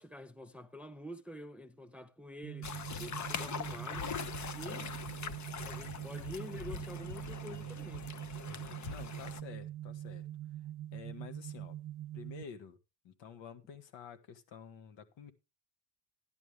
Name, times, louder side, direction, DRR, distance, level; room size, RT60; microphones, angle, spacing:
voice 1, 0.0-4.1 4.5-4.9 5.6-8.1, left 1 dB, 5° right, 0.7 m, -47 dB
sound 1, 2.4-12.4, right 13 dB, 55° right, 0.8 m, -44 dB
Walking on the shore splashing, 2.6-9.4, left 7 dB, 35° left, 0.9 m, -42 dB
voice 2, 8.9-10.3 10.9-11.7 12.1-12.8 13.0-15.3, left 7 dB, 65° left, 1.6 m, -50 dB
13.0 x 11.0 x 3.3 m
supercardioid pair, 90°, 47 cm